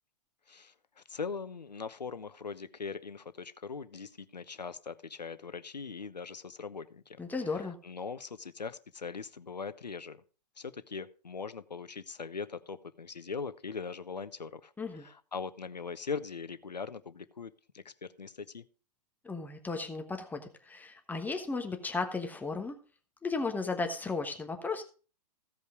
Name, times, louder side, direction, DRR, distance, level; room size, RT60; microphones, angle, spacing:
voice 1, 0.5-7.2 7.5-10.2 10.6-18.6, left 5 dB, 90° left, 13 dB, 1.0 m, -41 dB
voice 2, 7.2-7.8 14.8-15.1 19.2-22.8 23.2-24.8, left 4 dB, 10° left, 4 dB, 1.3 m, -35 dB
16.0 x 5.4 x 4.8 m, 0.37 s
figure-of-eight pair, 115°, 21 cm